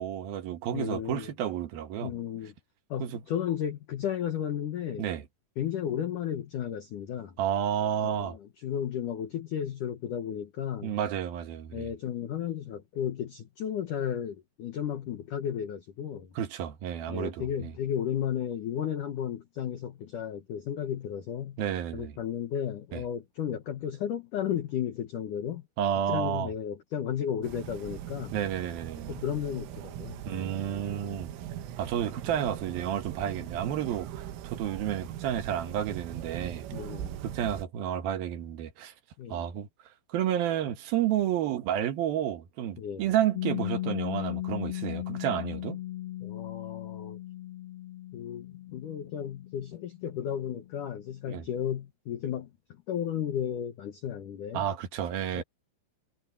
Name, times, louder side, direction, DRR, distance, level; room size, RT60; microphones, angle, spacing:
voice 1, 0.0-2.1 3.0-3.2 5.0-5.2 7.4-8.4 10.8-11.9 16.4-17.7 21.6-22.2 22.9-23.0 25.8-26.5 28.3-29.1 30.3-31.3 31.8-36.6 37.2-38.9 39.3-39.7 40.1-45.8 51.3-51.4 54.5-55.4, right 10 dB, 65° right, 2.7 m, -31 dB
voice 2, 0.7-1.3 2.0-2.5 2.9-5.1 5.6-7.4 8.0-11.0 11.7-16.3 17.1-21.6 21.9-25.6 26.1-28.4 29.1-30.2 36.7-37.2 39.2-39.4 42.8-43.1 46.2-47.2 48.1-52.5 52.9-54.7 55.3-55.4, left 9 dB, 90° left, 1.7 m, -34 dB
sound 1, 27.4-37.6, right 11 dB, 80° right, 3.9 m, -40 dB
Piano, 43.3-50.6, left 15 dB, 70° left, 2.5 m, -37 dB
omnidirectional pair, 5.9 m